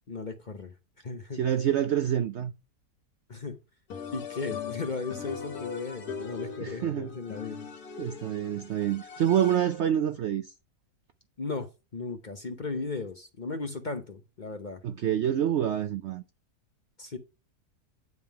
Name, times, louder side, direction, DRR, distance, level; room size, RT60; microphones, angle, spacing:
voice 1, 0.1-0.7 1.0-1.6 3.3-3.6 4.1-7.7 11.4-14.8 17.0-17.2, left 3 dB, 40° left, 0.7 m, -36 dB
voice 2, 1.4-2.5 6.6-7.1 8.0-10.5 14.8-16.2, right 10 dB, 70° right, 0.6 m, -27 dB
sound 1, 3.9-10.0, left 6 dB, 75° left, 1.6 m, -40 dB
9.4 x 3.6 x 4.4 m
omnidirectional pair, 1.7 m